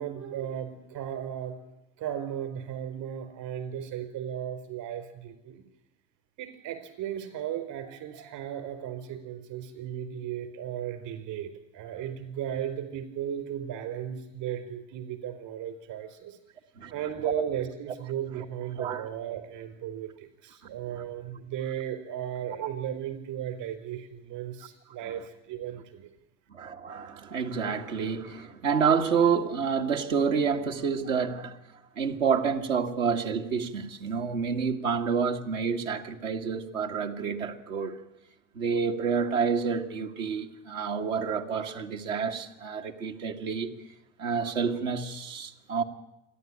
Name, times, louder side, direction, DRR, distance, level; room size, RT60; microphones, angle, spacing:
voice 1, 0.0-1.5 2.0-5.6 6.4-16.4 16.9-26.1, right 10 dB, 55° right, 4.6 m, -36 dB
voice 2, 26.5-31.6 32.0-38.0 38.5-43.7 44.2-45.8, right 6 dB, 80° right, 2.0 m, -28 dB
28.0 x 11.0 x 8.7 m
hypercardioid pair, 80°, 39 cm